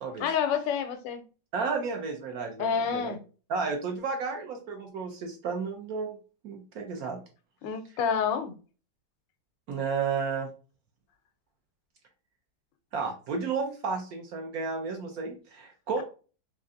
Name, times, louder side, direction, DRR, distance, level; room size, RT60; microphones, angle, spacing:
voice 1, 0.2-1.2 2.6-3.2 7.6-8.5, left 7 dB, 90° left, 1.3 m, -28 dB
voice 2, 1.5-3.1 3.5-6.2 6.4-7.2 9.7-10.5 12.9-16.0, right 5 dB, 70° right, 0.9 m, -32 dB
3.6 x 3.2 x 2.5 m
omnidirectional pair, 1.9 m